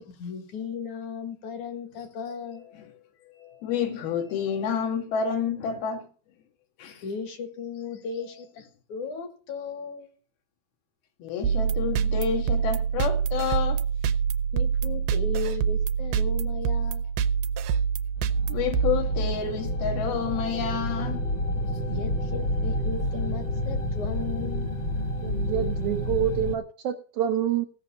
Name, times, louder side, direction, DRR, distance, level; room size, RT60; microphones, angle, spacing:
voice 1, 0.2-2.7 7.0-10.1 14.5-17.0 21.9-24.7, left 5 dB, 60° left, 2.9 m, -36 dB
voice 2, 3.4-6.1 6.8-7.0 11.2-13.8 18.5-21.3, left 7 dB, 80° left, 3.6 m, -29 dB
sound 1, 11.4-19.6, right 7 dB, 90° right, 2.7 m, -26 dB
sound 2, 18.2-26.6, equal, 40° left, 1.7 m, -29 dB
voice 3, 25.2-27.7, right 10 dB, 70° right, 2.0 m, -27 dB
16.5 x 6.3 x 6.8 m
omnidirectional pair, 4.3 m